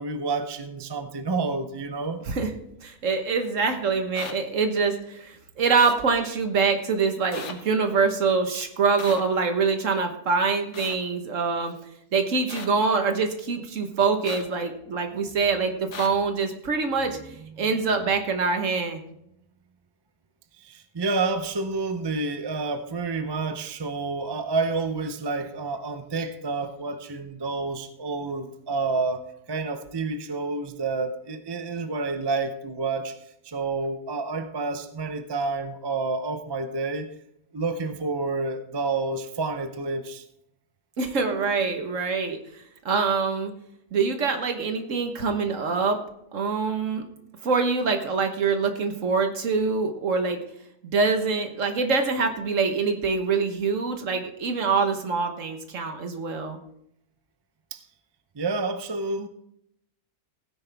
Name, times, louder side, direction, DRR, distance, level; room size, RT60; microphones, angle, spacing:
voice 1, 0.0-2.2 15.1-15.4 17.4-17.5 20.6-33.1 33.4-37.1 37.5-40.2 57.7-57.8 58.4-59.3, right 3 dB, 35° right, 8 dB, 0.4 m, -29 dB
voice 2, 2.8-11.7 12.1-17.2 17.6-19.0 41.0-42.4 42.8-43.5 43.9-46.0 46.3-47.0 47.4-50.4 50.8-56.6, right 4 dB, 55° right, 6 dB, 1.5 m, -24 dB
sound 1, 4.1-4.3 5.8-6.0 7.3-7.5 9.0-9.2 10.7-10.9 12.5-12.7 14.2-14.4 15.9-16.1, left 5 dB, 50° left, 1.4 m, -36 dB
16.5 x 9.7 x 3.5 m, 0.75 s
omnidirectional pair, 1.7 m